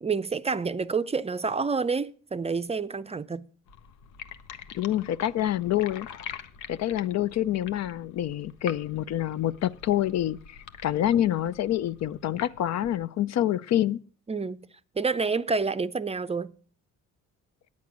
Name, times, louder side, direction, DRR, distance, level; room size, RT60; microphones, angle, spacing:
voice 1, 0.0-3.5 14.3-14.7 15.0-16.5, right 4 dB, 20° right, 0.5 m, -28 dB
sound 1, 3.7-13.1, left 8 dB, 85° left, 0.8 m, -45 dB
voice 2, 4.7-6.1 6.7-14.0, left 12 dB, 60° left, 0.5 m, -27 dB
9.5 x 8.4 x 6.0 m
cardioid pair, 90°, 30 cm